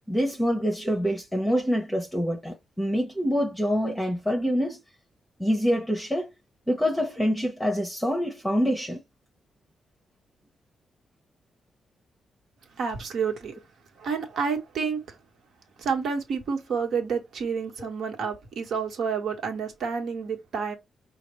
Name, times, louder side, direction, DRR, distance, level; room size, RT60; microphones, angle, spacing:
voice 1, 0.1-4.8 5.4-6.3 6.7-9.0, equal, 5° left, 0.9 m, -26 dB
voice 2, 12.8-13.5 14.0-15.1 15.8-20.8, right 5 dB, 65° right, 1.4 m, -29 dB
5.8 x 2.3 x 3.1 m
cardioid pair, 120°, 0 cm